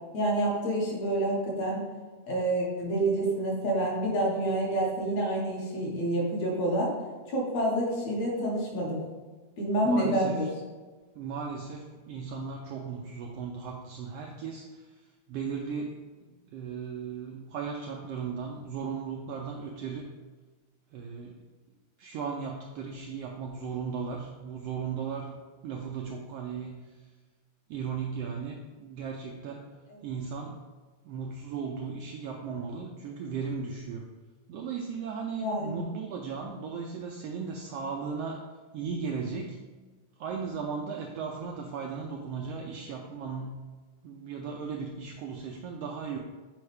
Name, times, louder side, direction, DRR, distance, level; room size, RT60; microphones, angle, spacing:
voice 1, 0.1-1.8 2.3-6.9 7.3-9.0 9.6-10.5 29.9-30.0 35.4-35.7, right 1 dB, 65° left, -3 dB, 2.5 m, -28 dB
voice 2, 9.8-10.4 11.2-14.8 15.3-16.0 16.5-20.1 20.9-21.4 22.0-25.4 25.6-26.8 27.7-29.6 30.0-30.6 31.0-34.1 34.5-38.4 38.7-39.6 40.2-43.6 44.0-46.2, right 5 dB, 90° right, 1 dB, 1.4 m, -36 dB
7.1 x 4.7 x 3.3 m, 1.3 s
omnidirectional pair, 3.4 m